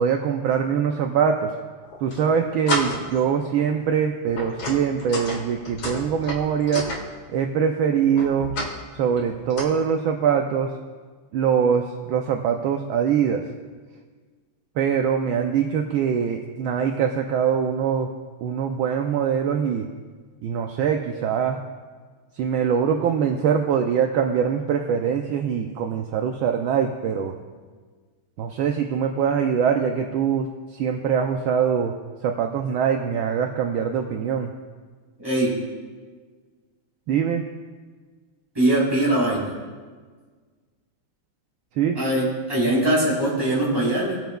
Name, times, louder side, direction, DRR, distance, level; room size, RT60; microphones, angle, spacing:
voice 1, 0.0-1.5 2.0-6.9 7.3-8.5 8.9-10.7 11.3-13.5 14.7-18.1 18.4-19.9 20.4-21.6 22.3-27.3 28.4-31.9 32.2-34.5 37.1-37.4 41.7-42.0, right 7 dB, 75° right, 4 dB, 1.4 m, -23 dB
sound 1, 1.8-2.2 2.7-3.2 3.6-3.8 4.3-7.0 8.2-8.8 9.1-9.6, left 1 dB, 65° left, 2.3 m, -30 dB
voice 2, 35.2-35.6 38.6-39.5 42.0-44.2, right 1 dB, 10° right, -7 dB, 3.6 m, -22 dB
19.0 x 9.0 x 2.3 m, 1.5 s
omnidirectional pair, 2.4 m